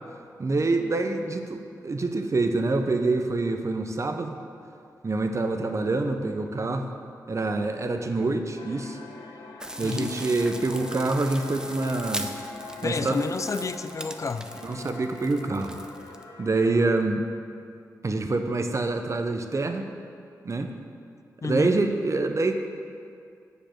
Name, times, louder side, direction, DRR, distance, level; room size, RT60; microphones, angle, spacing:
voice 1, 0.4-4.4 5.0-6.9 7.3-9.0 9.8-12.3 12.8-13.2 14.6-15.8 16.4-17.2 18.0-19.9 20.4-20.7 21.4-22.5, right 3 dB, 45° right, 6 dB, 0.7 m, -26 dB
sound 1, 8.6-16.9, left 4 dB, 80° left, 0.8 m, -43 dB
sound 2, 9.6-16.2, right 1 dB, 10° right, 0.6 m, -39 dB
voice 2, 12.8-14.5 21.4-21.8, left 4 dB, 45° left, 11 dB, 0.3 m, -30 dB
6.7 x 5.1 x 5.9 m, 2.4 s
cardioid pair, 45°, 7 cm